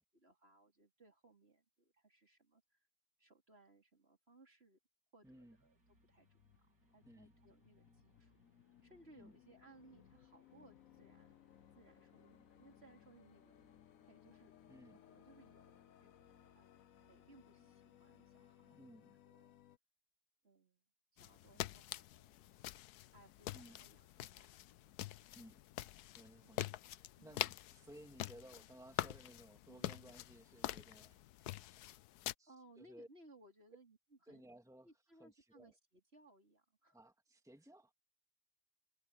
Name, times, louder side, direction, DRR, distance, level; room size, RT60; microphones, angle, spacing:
voice 1, 0.1-2.8 3.2-4.8 5.1-8.3 8.8-11.5 11.8-13.8 14.0-14.5 14.9-16.7 17.0-18.8 19.2-19.6 20.4-20.8 21.1-22.5 23.1-24.1 24.3-24.5 24.8-24.9 26.4-26.7 27.2-27.6 29.7-30.1 32.5-34.5 34.8-37.0, right 2 dB, 40° right, 4.3 m, -65 dB
voice 2, 5.2-5.6 7.1-7.3 9.2-9.3 14.7-15.0 18.7-19.2 23.5-23.9 25.3-25.6 26.1-31.8 32.4-33.1 34.3-34.9 35.2-35.7 36.9-37.9, right 1 dB, ahead, 3.0 m, -59 dB
sound 1, 5.2-18.8, right 1 dB, 80° right, 4.3 m, -75 dB
sound 2, 5.7-19.8, left 11 dB, 65° left, 1.1 m, -65 dB
sound 3, 21.2-32.3, left 14 dB, 85° left, 1.1 m, -45 dB
omnidirectional pair, 1.6 m